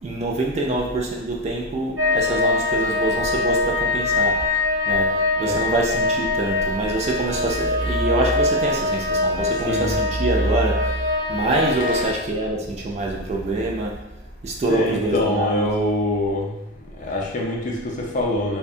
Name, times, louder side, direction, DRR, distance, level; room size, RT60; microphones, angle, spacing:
voice 1, 0.0-14.1 14.4-15.7, right 2 dB, 35° right, 0 dB, 0.3 m, -25 dB
sound 1, 2.0-12.0, left 3 dB, 75° right, 0.8 m, -23 dB
voice 2, 5.4-5.7 9.7-9.9 11.8-12.1 14.6-16.5 17.0-18.6, left 1 dB, 40° left, -1 dB, 0.4 m, -25 dB
2.6 x 2.2 x 2.4 m, 0.96 s
head